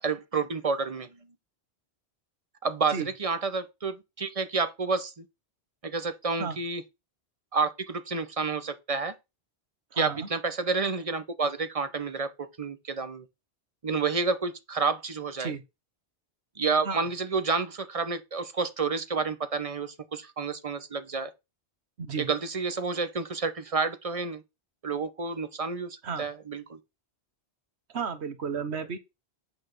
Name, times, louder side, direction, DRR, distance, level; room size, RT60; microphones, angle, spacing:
voice 1, 0.0-1.2 2.6-5.2 5.8-6.8 7.5-9.1 10.0-13.2 13.8-15.5 16.6-21.3 22.2-24.4 24.8-26.8, right 4 dB, 35° right, 0.9 m, -30 dB
voice 2, 9.9-10.3 15.4-15.6 16.8-17.0 22.0-22.3 26.0-26.3 27.9-29.0, right 5 dB, 90° right, 1.4 m, -33 dB
8.2 x 3.9 x 6.7 m
omnidirectional pair, 1.1 m